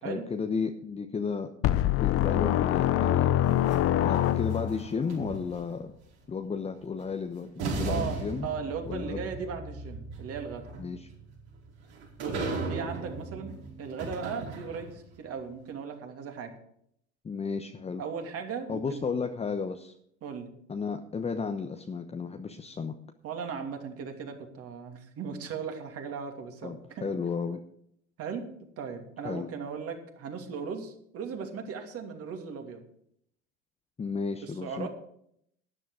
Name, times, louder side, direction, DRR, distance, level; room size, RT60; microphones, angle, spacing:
voice 1, 0.0-5.9 6.3-8.5 8.9-9.2 10.8-11.1 17.2-18.0 18.7-19.9 20.7-23.0 26.6-27.6 29.2-29.5 34.0-34.9, left 5 dB, 20° left, 6 dB, 1.0 m, -33 dB
sound 1, 1.6-4.9, left 12 dB, 40° left, 0.8 m, -24 dB
sound 2, 3.4-5.8 7.0-7.1 7.6-15.1, right 3 dB, 65° right, 5.0 m, -37 dB
voice 2, 7.9-10.6 12.2-16.5 18.0-19.0 20.2-20.5 23.2-27.1 28.2-28.5 28.8-32.8 34.4-34.9, right 6 dB, 40° right, 4 dB, 2.8 m, -37 dB
13.0 x 10.5 x 5.0 m, 0.69 s
hypercardioid pair, 80°, 35 cm